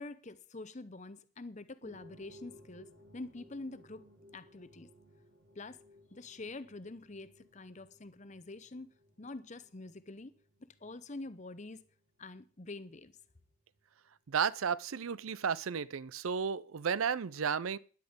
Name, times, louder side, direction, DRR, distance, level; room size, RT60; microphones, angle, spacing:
voice 1, 0.0-4.0 4.3-4.9 5.5-5.8 6.1-10.3 10.6-11.8 12.2-13.1, left 2 dB, 35° left, 0.8 m, -46 dB
sound 1, 1.8-14.4 14.7-14.8 15.5-15.6, left 1 dB, 55° right, 2.3 m, -61 dB
voice 2, 14.3-17.8, right 6 dB, 75° right, 0.5 m, -33 dB
13.0 x 10.5 x 5.2 m
head